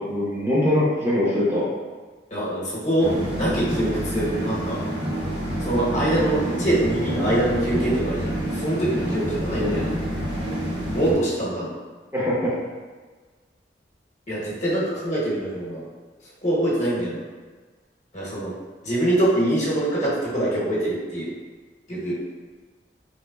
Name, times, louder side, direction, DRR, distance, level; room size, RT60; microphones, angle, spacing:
voice 1, 0.1-1.7 9.6-9.8 12.1-12.5, left 1 dB, 15° right, -8 dB, 0.7 m, -22 dB
voice 2, 2.3-4.8 5.6-9.9 10.9-11.7 14.3-15.8 16.4-17.2 18.1-18.5 18.8-21.3 21.9-22.2, right 1 dB, 40° left, -7 dB, 1.0 m, -24 dB
sound 1, 3.0-11.1, right 1 dB, 70° right, 0.9 m, -28 dB
3.3 x 3.1 x 2.3 m, 1.4 s
head